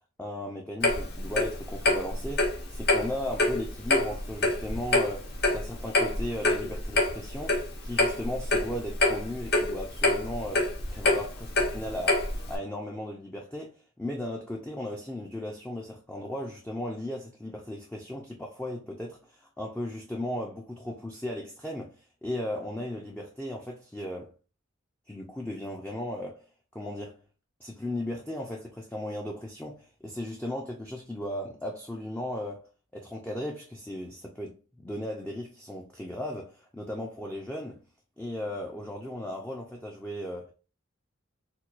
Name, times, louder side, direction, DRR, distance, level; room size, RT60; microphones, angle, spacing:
voice 1, 0.2-24.3 25.1-26.4 26.7-27.2 27.6-32.6 32.9-37.8 38.2-40.5, left 1 dB, 5° left, 0.3 m, -36 dB
Clock, 0.8-12.6, left 2 dB, 50° left, 0.7 m, -26 dB
4.4 x 2.2 x 2.4 m
head